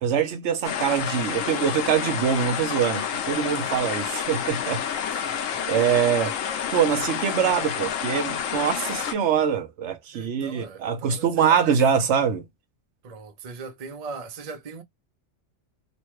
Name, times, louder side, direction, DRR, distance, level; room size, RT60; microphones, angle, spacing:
voice 1, 0.0-5.4 5.7-6.4 6.7-12.4, right 8 dB, 70° right, 0.9 m, -24 dB
sound 1, 0.6-9.1, left 8 dB, 85° left, 1.0 m, -29 dB
voice 2, 10.1-11.6 13.0-14.8, right 4 dB, 40° right, 0.6 m, -39 dB
3.1 x 2.2 x 3.0 m
omnidirectional pair, 1.3 m